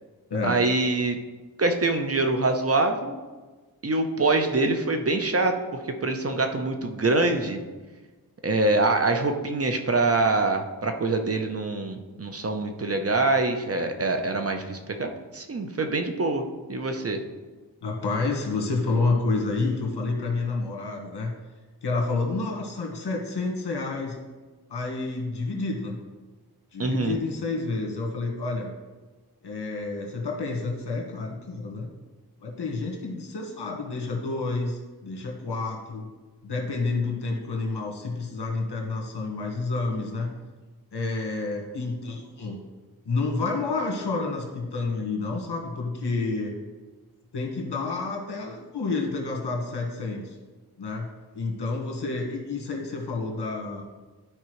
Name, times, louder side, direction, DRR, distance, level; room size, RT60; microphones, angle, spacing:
voice 1, 0.4-1.2 1.6-3.2 3.8-7.6 8.4-17.2 26.8-27.2, right 2 dB, 35° right, 5 dB, 0.7 m, -25 dB
voice 2, 17.8-21.3 21.8-24.2 24.7-25.9 26.7-28.7 29.4-31.9 32.4-36.1 36.4-40.3 40.9-42.6 43.0-46.6 47.3-50.3 50.8-51.1 51.3-53.8, left 3 dB, 80° left, 1 dB, 1.6 m, -29 dB
12.0 x 4.7 x 3.1 m, 1.3 s
wide cardioid pair, 100°, 40 cm